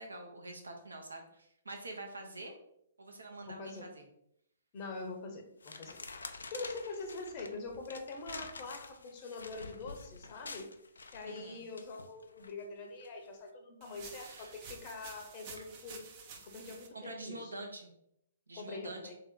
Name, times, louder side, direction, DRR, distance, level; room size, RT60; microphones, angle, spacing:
voice 1, 0.0-2.5 3.0-4.0 11.3-11.6 14.2-14.5 16.9-17.9 18.5-19.0, right 2 dB, 75° right, 2 dB, 0.8 m, -46 dB
voice 2, 3.5-3.9 4.7-6.0 6.5-10.7 11.1-16.1 16.4-17.5 18.5-19.1, left 3 dB, 35° left, 3 dB, 0.7 m, -44 dB
Playing with a map, 4.8-5.1 5.6-12.5 13.0-13.3, left 4 dB, 65° left, 0.3 m, -48 dB
sound 1, 13.8-16.9, right 5 dB, 35° right, 0.6 m, -50 dB
3.3 x 2.8 x 3.6 m, 0.75 s
figure-of-eight pair, 120°, 0 cm